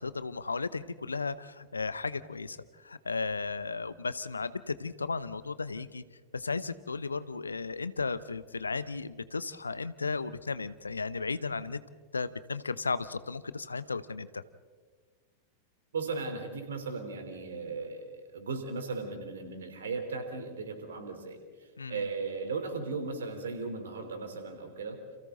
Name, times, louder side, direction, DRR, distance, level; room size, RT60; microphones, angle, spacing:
voice 1, 0.0-6.0 6.3-11.8 12.1-14.4 21.8-22.1, left 4 dB, 75° left, 16 dB, 0.8 m, -35 dB
voice 2, 15.9-18.1 18.3-21.4 21.9-25.0, right 4 dB, 65° right, 6 dB, 3.5 m, -36 dB
30.0 x 28.5 x 3.9 m, 1.5 s
figure-of-eight pair, 90°, 0 cm